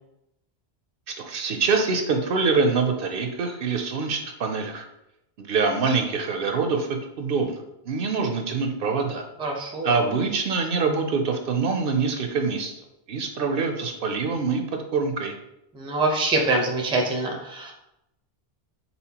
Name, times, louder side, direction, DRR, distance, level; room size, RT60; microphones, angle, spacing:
voice 1, 1.1-4.8 5.4-7.6 7.9-9.2 9.8-12.7 13.1-14.6 14.9-15.3, right 4 dB, 65° right, 4 dB, 0.7 m, -25 dB
voice 2, 9.4-9.9 15.7-17.7, right 2 dB, 5° right, 1 dB, 0.4 m, -24 dB
4.2 x 3.9 x 2.8 m, 0.84 s
omnidirectional pair, 1.1 m